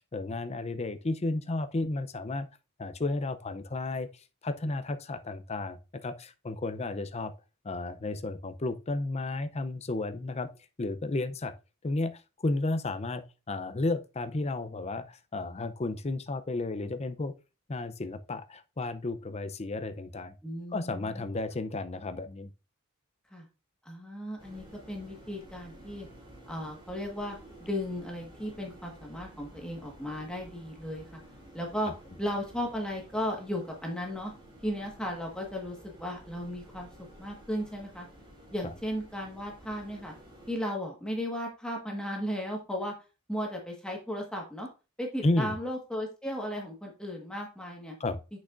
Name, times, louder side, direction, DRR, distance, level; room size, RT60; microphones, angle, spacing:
voice 1, 0.0-2.5 2.8-7.3 7.6-10.5 10.8-11.5 11.8-17.3 17.7-20.3 20.7-22.5 38.6-38.7 45.2-45.6 48.0-48.2, left 2 dB, 30° left, 0.6 m, -33 dB
voice 2, 20.4-21.2 23.3-23.4 23.8-26.1 26.5-31.2 31.5-31.9 32.2-34.3 34.6-36.9 37.2-38.1 38.5-40.1 40.5-42.9 43.3-44.7 45.0-48.0, equal, 5° left, 1.5 m, -35 dB
sound 1, 24.4-40.6, right 1 dB, 25° right, 2.6 m, -52 dB
8.4 x 6.2 x 2.5 m
head